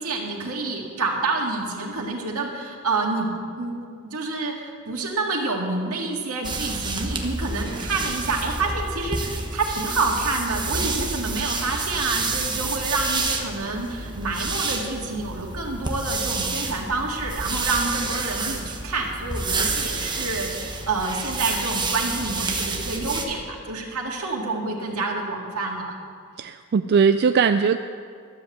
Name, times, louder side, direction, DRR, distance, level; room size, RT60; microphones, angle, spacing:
voice 1, 0.0-3.3 3.5-3.7 4.1-25.9, right 3 dB, 85° right, 0 dB, 2.0 m, -28 dB
sound 1, 6.4-23.3, right 3 dB, 20° right, 1.0 m, -29 dB
voice 2, 26.4-27.8, right 6 dB, 50° right, 9 dB, 0.3 m, -19 dB
13.0 x 7.5 x 7.8 m, 2.1 s
head